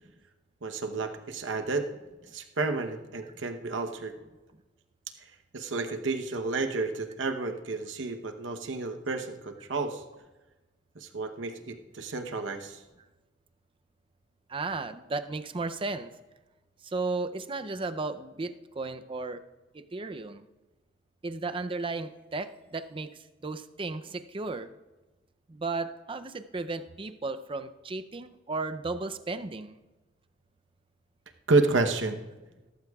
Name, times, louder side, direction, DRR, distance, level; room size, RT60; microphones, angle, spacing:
voice 1, 0.6-1.9 2.2-4.1 5.2-10.0 10.9-12.8 31.5-32.2, right 3 dB, 85° right, 6 dB, 0.9 m, -30 dB
voice 2, 14.5-16.1 16.8-19.4 19.9-20.4 21.2-23.1 23.4-24.7 25.5-29.8, right 3 dB, 30° right, 10 dB, 0.5 m, -34 dB
17.0 x 14.5 x 2.3 m, 1.1 s
head